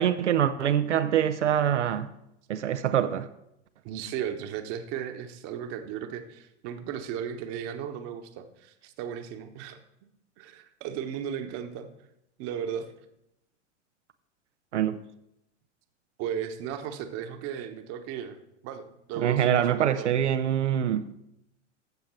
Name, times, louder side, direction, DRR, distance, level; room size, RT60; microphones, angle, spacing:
voice 1, 0.0-2.1 2.5-3.3 14.7-15.0 19.2-21.1, right 10 dB, 70° right, 0.7 m, -24 dB
voice 2, 3.8-9.8 10.4-11.9 12.4-12.9 16.2-18.4 18.6-20.1, right 8 dB, 40° right, 1.2 m, -35 dB
13.5 x 7.5 x 4.5 m
figure-of-eight pair, 90°, 36 cm